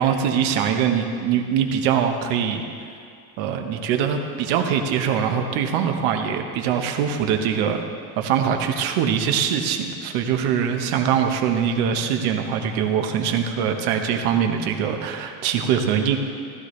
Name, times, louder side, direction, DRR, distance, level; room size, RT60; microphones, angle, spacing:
voice 1, 0.0-2.6 3.4-7.8 8.2-16.2, right 8 dB, 80° right, 4 dB, 1.3 m, -22 dB
15.0 x 13.5 x 3.3 m, 2.3 s
cardioid pair, 155°, 39 cm